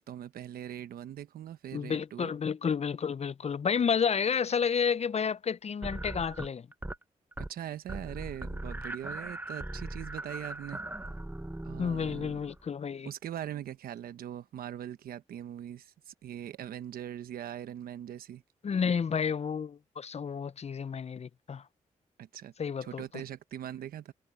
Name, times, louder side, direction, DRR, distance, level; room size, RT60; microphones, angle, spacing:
voice 1, 0.0-2.5 7.4-10.8 11.6-12.4 13.0-18.4 22.2-22.5 22.8-24.1, right 11 dB, 90° right, 1.1 m, -41 dB
voice 2, 1.7-6.7 11.8-13.1 18.6-21.6 22.6-23.0, left 6 dB, 45° left, 0.5 m, -31 dB
sound 1, 5.8-7.0 7.3-7.6 7.9-12.6, right 1 dB, 10° right, 1.1 m, -39 dB
supercardioid pair, 50°, 15 cm